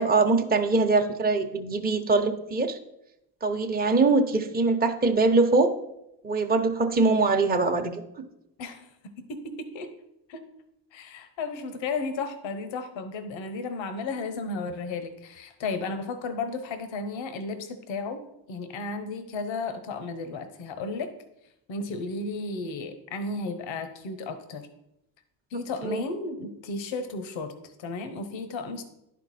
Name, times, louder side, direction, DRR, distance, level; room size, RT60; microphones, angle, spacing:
voice 1, 0.0-2.8 3.4-5.7 6.2-8.0 25.8-26.0, right 3 dB, 20° right, 4 dB, 0.8 m, -23 dB
voice 2, 8.6-9.9 10.3-10.5 10.9-18.2 18.5-21.1 21.7-24.7 25.5-28.8, left 3 dB, 75° left, 9 dB, 0.9 m, -34 dB
10.5 x 4.5 x 4.1 m, 0.85 s
supercardioid pair, 60°, 46 cm